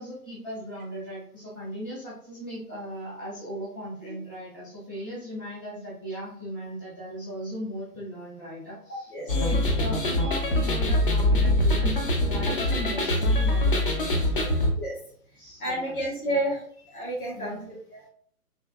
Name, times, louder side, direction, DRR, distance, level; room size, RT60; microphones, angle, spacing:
voice 1, 0.0-14.6 15.4-16.4 17.3-17.8, equal, 15° right, -9 dB, 0.4 m, -38 dB
voice 2, 8.9-9.3 10.0-10.3 14.8-14.9 15.6-16.6 16.9-18.1, right 1 dB, 65° left, -4 dB, 1.1 m, -31 dB
sound 1, 9.3-14.7, left 1 dB, 35° left, 0.6 m, -23 dB
3.3 x 2.5 x 2.3 m, 0.62 s
figure-of-eight pair, 130°, 46 cm